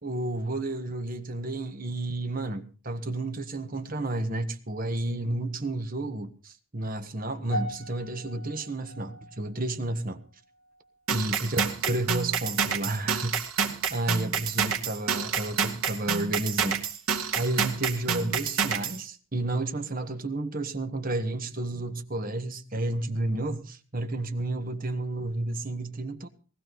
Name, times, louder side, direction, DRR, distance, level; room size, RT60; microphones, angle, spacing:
voice 1, 0.0-10.2 11.1-13.5 13.9-16.8 17.3-26.3, right 2 dB, 40° right, 1.5 m, -31 dB
sound 1, 7.5-11.9 12.2-12.5 13.2-13.3, equal, 35° left, 7.2 m, -41 dB
sound 2, 11.1-19.0, right 6 dB, 80° right, 2.4 m, -28 dB
20.0 x 14.5 x 4.0 m
head